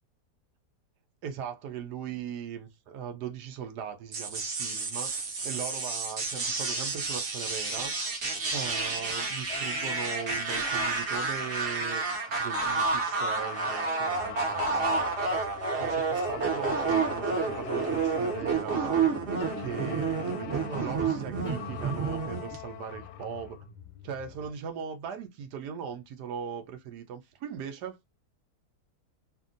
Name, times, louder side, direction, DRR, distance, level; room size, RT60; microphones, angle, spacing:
voice 1, 1.2-5.2 5.4-7.9 8.5-12.0 12.4-15.1 15.8-19.2 19.6-23.6 24.0-28.0, right 7 dB, 80° right, 1.2 m, -39 dB
sound 1, 4.1-22.6, right 4 dB, 50° right, 1.1 m, -30 dB
sound 2, 9.5-12.6 13.0-15.6 16.1-18.7 19.4-23.6, left 11 dB, 85° left, 1.2 m, -43 dB
sound 3, 14.0-24.5, left 6 dB, 45° left, 0.4 m, -50 dB
2.8 x 2.6 x 2.5 m
omnidirectional pair, 1.7 m